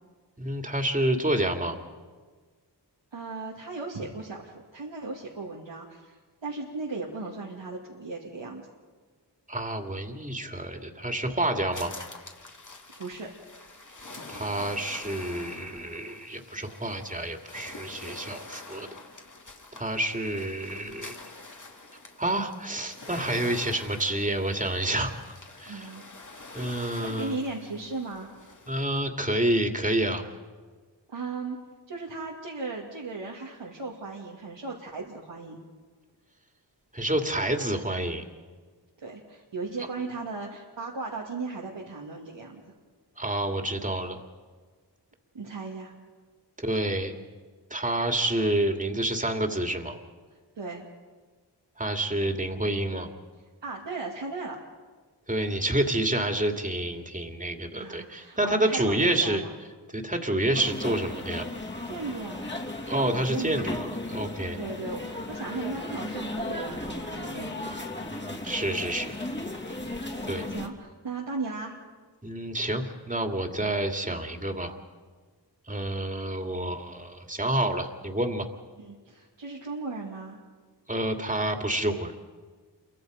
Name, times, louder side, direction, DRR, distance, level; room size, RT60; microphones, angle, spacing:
voice 1, 0.4-1.7 9.5-11.9 14.3-18.9 19.7-21.2 22.2-25.1 25.6-25.9 26.5-27.4 28.7-30.2 36.9-38.2 43.2-44.2 46.6-47.1 47.7-50.0 51.8-53.1 55.3-59.4 59.9-61.4 62.9-63.8 64.1-64.6 68.0-69.1 70.2-70.5 72.2-74.7 75.7-78.5 80.9-82.1, right 1 dB, 20° right, 4 dB, 2.6 m, -28 dB
voice 2, 3.1-8.7 13.0-13.3 25.6-26.3 27.0-28.3 31.1-31.6 31.9-35.6 39.0-42.6 45.3-45.9 50.6-50.9 53.6-54.6 57.7-59.5 61.8-62.5 63.2-63.7 64.5-67.6 70.5-71.8 78.8-80.4, right 3 dB, 85° right, -3 dB, 2.6 m, -36 dB
sound 1, 11.7-29.0, left 3 dB, 45° left, 2.4 m, -46 dB
sound 2, 60.5-70.7, left 1 dB, 25° left, 2.9 m, -35 dB
28.0 x 24.0 x 5.2 m, 1.4 s
cardioid pair, 45°, 43 cm